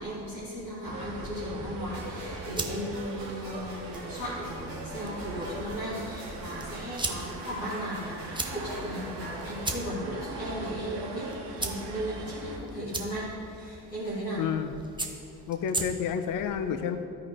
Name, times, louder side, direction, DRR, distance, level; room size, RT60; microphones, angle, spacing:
voice 1, 0.0-11.3 11.6-13.3 13.6-14.5, equal, 90° left, -8 dB, 1.7 m, -36 dB
sound 1, 0.8-12.6, right 3 dB, 55° right, 1.3 m, -41 dB
sound 2, 1.9-9.9, equal, 85° right, 1.5 m, -44 dB
sound 3, 2.4-16.3, right 2 dB, 10° right, 0.8 m, -40 dB
voice 2, 14.4-14.7 15.5-17.0, left 8 dB, 40° left, 9 dB, 0.6 m, -30 dB
13.0 x 4.7 x 3.7 m, 2.6 s
figure-of-eight pair, 40°, 49 cm